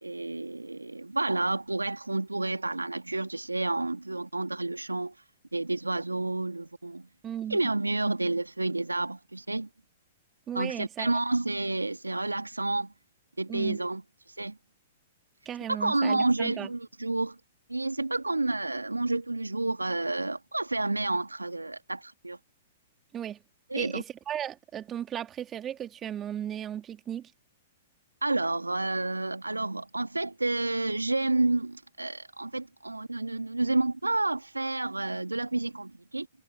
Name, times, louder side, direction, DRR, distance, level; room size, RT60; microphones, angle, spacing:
voice 1, 0.0-5.1 5.5-7.1 7.5-9.7 10.5-12.9 13.4-14.0 14.4-14.6 15.7-17.4 17.7-22.4 23.7-24.0 28.2-36.3, right 2 dB, 90° right, 2.4 m, -30 dB
voice 2, 7.2-7.6 10.5-11.1 13.5-13.8 15.4-16.7 23.1-23.4 23.7-27.3, right 10 dB, 25° right, 2.9 m, -36 dB
figure-of-eight pair, 110°, 0 cm